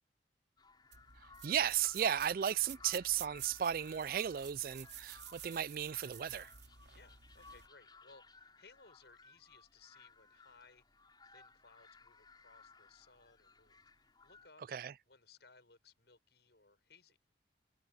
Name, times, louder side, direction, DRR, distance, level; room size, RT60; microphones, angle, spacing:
sound 1, 0.6-14.5, left 4 dB, 25° left, 7.2 m, -60 dB
sound 2, 0.9-7.7, right 11 dB, 80° right, 2.6 m, -52 dB
voice 1, 1.4-6.5 14.7-14.9, right 9 dB, 50° right, 0.3 m, -35 dB
voice 2, 6.9-10.8 11.2-13.8 14.2-14.6 15.0-17.2, left 4 dB, 70° left, 6.4 m, -63 dB
head